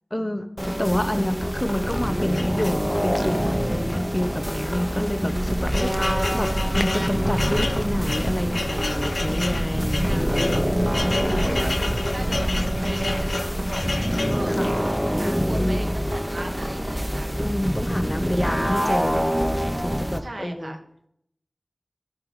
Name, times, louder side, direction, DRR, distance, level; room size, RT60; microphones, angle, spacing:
voice 1, 0.1-0.5 0.8-10.7 11.2-11.7 14.5-14.7 15.2-15.9 17.4-19.3 19.8-20.8, left 1 dB, 20° left, 8 dB, 0.8 m, -29 dB
sound 1, 0.6-20.2, equal, 5° right, 1.0 m, -26 dB
sound 2, 2.3-3.2 3.9-4.1 4.3-4.4 5.1-14.5, left 2 dB, 80° left, 0.4 m, -32 dB
sound 3, 5.3-13.4, right 1 dB, 35° right, 0.8 m, -29 dB
voice 2, 10.0-10.4 10.9-11.7 12.1-14.5 15.1-17.4 20.2-20.8, right 1 dB, 70° right, 3 dB, 1.4 m, -38 dB
12.5 x 4.8 x 4.9 m, 0.71 s
wide cardioid pair, 50°, 0 cm